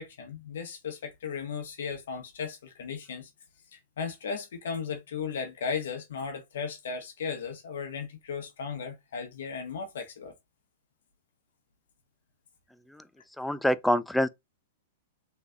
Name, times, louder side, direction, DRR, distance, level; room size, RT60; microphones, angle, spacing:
voice 1, 0.0-3.3 3.7-10.3, left 6 dB, 70° left, 1.0 m, -36 dB
voice 2, 13.4-14.3, equal, 5° left, 0.3 m, -25 dB
3.7 x 3.2 x 2.2 m
hypercardioid pair, 115°, 0 cm